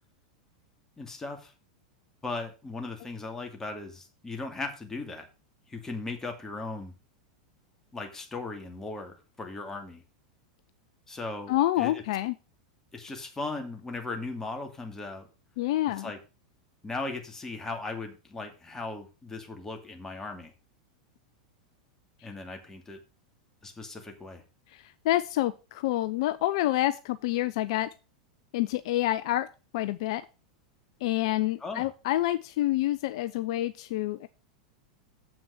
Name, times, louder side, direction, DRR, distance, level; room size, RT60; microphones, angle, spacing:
voice 1, 1.0-1.5 2.2-5.3 5.7-6.9 7.9-10.0 11.1-12.0 12.9-15.3 16.0-16.2 16.8-20.5 22.2-23.0 23.6-24.4 31.6-31.9, left 3 dB, 15° left, 4 dB, 2.4 m, -37 dB
voice 2, 11.5-12.3 15.6-16.1 24.7-27.9 28.5-29.5 29.7-30.2 31.0-34.3, left 15 dB, 60° left, 13 dB, 0.5 m, -28 dB
7.6 x 6.0 x 6.4 m, 0.31 s
hypercardioid pair, 95°, 4 cm